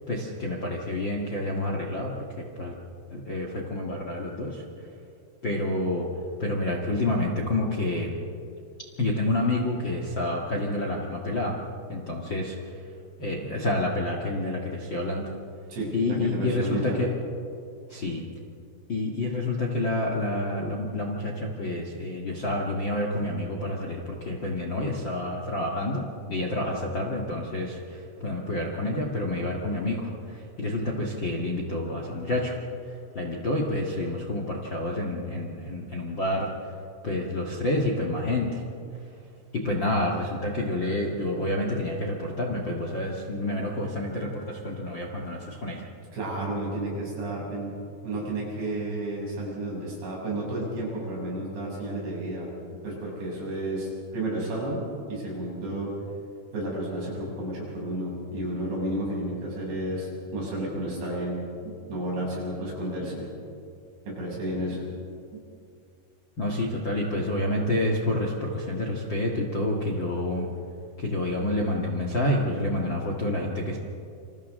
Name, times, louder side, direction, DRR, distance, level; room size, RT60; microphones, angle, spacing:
voice 1, 0.1-2.7 3.1-4.6 5.4-6.1 6.4-8.2 9.0-11.6 11.9-12.9 13.2-15.3 15.9-17.1 17.9-18.2 18.9-26.0 26.3-36.7 37.0-38.6 39.5-45.9 66.4-70.5 71.0-73.8, left 1 dB, 45° left, 0 dB, 1.5 m, -28 dB
voice 2, 15.7-17.0 46.1-47.7 48.0-52.5 52.8-54.8 55.1-55.9 56.5-61.4 61.6-63.3 64.1-64.8 65.3-65.4, right 1 dB, 85° right, -4 dB, 9.1 m, -32 dB
28.5 x 27.5 x 3.8 m, 2.5 s
omnidirectional pair, 5.0 m